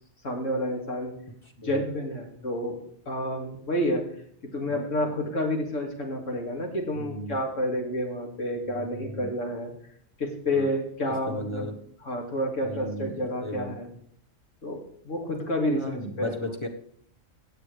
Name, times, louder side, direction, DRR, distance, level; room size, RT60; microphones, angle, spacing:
voice 1, 0.2-1.1 1.6-2.8 3.1-4.0 4.4-9.7 10.2-11.7 12.0-13.9 14.6-16.4, left 1 dB, 65° left, 1 dB, 2.7 m, -29 dB
voice 2, 4.5-5.2 6.9-7.4 8.5-9.3 10.5-10.7 11.3-11.7 12.6-13.8 15.7-16.7, left 1 dB, 20° left, 3 dB, 1.3 m, -36 dB
16.0 x 9.0 x 3.4 m, 0.65 s
omnidirectional pair, 1.4 m